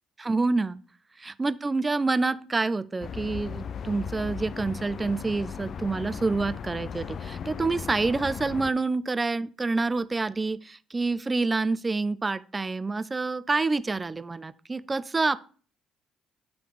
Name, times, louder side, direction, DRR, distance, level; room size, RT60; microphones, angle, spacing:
voice 1, 0.2-0.8 1.2-15.4, right 3 dB, 25° right, 14 dB, 0.5 m, -27 dB
sound 1, 3.0-8.7, left 7 dB, 50° left, 0.4 m, -37 dB
10.0 x 3.4 x 4.9 m, 0.39 s
hypercardioid pair, 50°, 0 cm